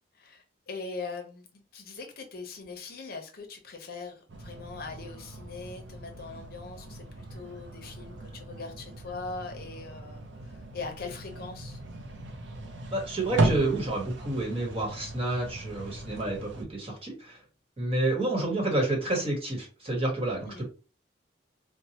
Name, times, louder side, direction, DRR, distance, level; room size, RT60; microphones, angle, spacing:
voice 1, 0.1-11.8 20.5-20.7, left 4 dB, 55° left, 3 dB, 0.8 m, -41 dB
sound 1, 4.3-16.6, right 2 dB, 75° right, 0.6 m, -36 dB
voice 2, 12.9-17.4 17.8-20.7, right 2 dB, 30° right, 0 dB, 1.2 m, -29 dB
4.4 x 2.1 x 2.8 m, 0.35 s
head